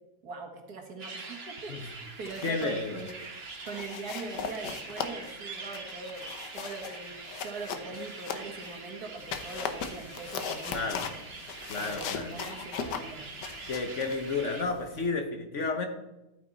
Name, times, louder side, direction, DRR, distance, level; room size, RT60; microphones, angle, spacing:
voice 1, 0.2-3.3 3.6-6.3 6.5-7.2 7.4-11.2 11.8-13.2, right 3 dB, 65° right, 3 dB, 2.2 m, -42 dB
sound 1, 1.0-14.6, right 3 dB, 40° right, 1.4 m, -44 dB
sound 2, 2.0-2.7 3.0-3.3 3.7-8.8 9.2-15.1, left 6 dB, 80° left, 1.5 m, -39 dB
voice 2, 2.4-3.0 10.7-11.1 11.7-12.4 13.7-15.9, left 4 dB, 50° left, 5 dB, 1.2 m, -31 dB
12.5 x 8.8 x 4.0 m, 0.97 s
omnidirectional pair, 1.8 m